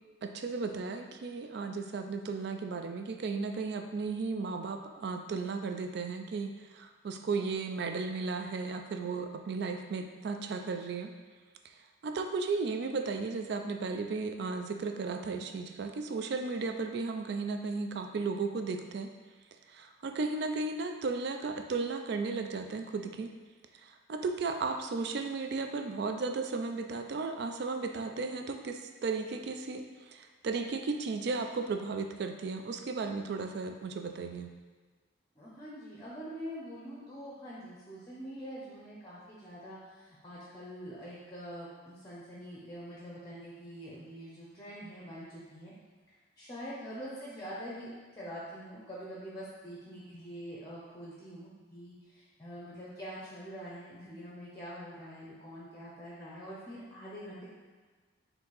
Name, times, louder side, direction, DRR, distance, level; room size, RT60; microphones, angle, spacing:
voice 1, 0.2-11.1 12.0-19.1 19.7-23.3 23.8-34.5, right 4 dB, 55° right, 6 dB, 0.3 m, -35 dB
voice 2, 35.4-45.7 46.4-57.5, equal, 20° left, -6 dB, 0.7 m, -45 dB
4.4 x 2.7 x 3.9 m, 1.4 s
head